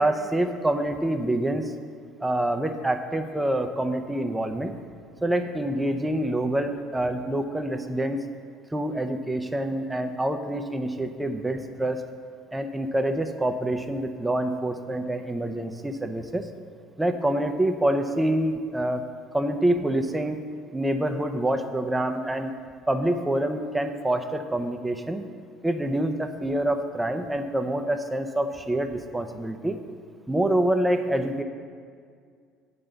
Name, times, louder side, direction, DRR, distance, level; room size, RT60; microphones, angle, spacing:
voice 1, 0.0-1.7 2.2-4.7 5.2-8.2 8.7-12.0 12.5-16.5 17.0-20.4 20.7-22.5 22.9-25.2 25.6-29.8 30.3-31.4, right 1 dB, 10° right, 7 dB, 0.7 m, -26 dB
8.6 x 5.6 x 6.7 m, 2.1 s
hypercardioid pair, 65°, 0 cm